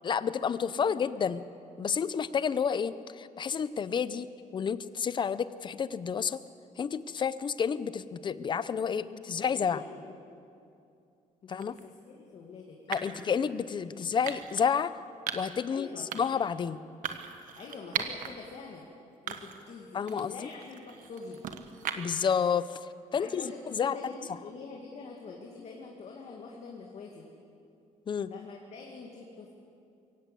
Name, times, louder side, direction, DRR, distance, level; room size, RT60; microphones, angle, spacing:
voice 1, 0.0-1.4 1.8-6.4 6.8-9.8 11.5-11.8 12.9-14.9 15.3-15.9 16.1-16.8 19.9-20.5 22.0-22.8 23.1-24.0 28.1-28.3, left 7 dB, 35° left, 15 dB, 0.7 m, -30 dB
voice 2, 0.8-1.2 9.1-9.2 9.6-10.3 11.4-13.3 13.9-14.1 15.7-16.1 17.6-18.9 19.2-21.4 23.1-27.3 28.3-29.5, left 4 dB, 55° left, 0 dB, 2.3 m, -45 dB
sound 1, 11.6-11.8 12.9-13.2 14.3-14.7 15.3-15.6 16.1-16.5 17.0-18.3 18.7-18.8 19.3-19.7 20.1-22.3, right 9 dB, 75° right, 1.4 m, -38 dB
22.5 x 17.0 x 8.3 m, 2.6 s
cardioid pair, 155°, 14 cm